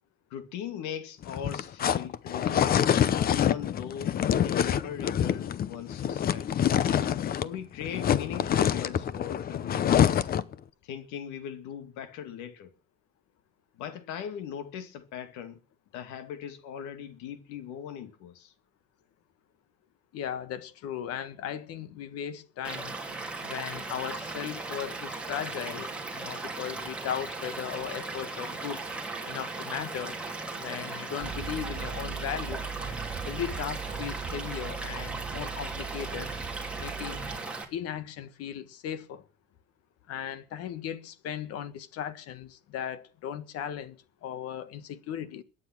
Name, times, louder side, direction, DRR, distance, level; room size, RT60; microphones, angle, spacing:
voice 1, 0.3-2.9 3.3-6.5 7.3-10.3 10.8-12.7 13.8-15.6 15.9-18.5, left 9 dB, 70° left, 2.5 m, -39 dB
sound 1, 1.2-7.6 7.8-10.5, left 9 dB, 30° left, 0.7 m, -26 dB
voice 2, 20.1-23.0 23.4-28.8 29.2-30.2 30.5-32.6 33.2-36.3 36.8-37.3 37.7-39.2 40.1-45.4, left 9 dB, 50° left, 1.5 m, -37 dB
Stream / Liquid, 22.6-37.6, right 3 dB, 5° right, 3.0 m, -37 dB
sound 2, 31.2-37.4, right 7 dB, 30° right, 4.2 m, -39 dB
22.5 x 9.6 x 6.1 m
cardioid pair, 155°, 30 cm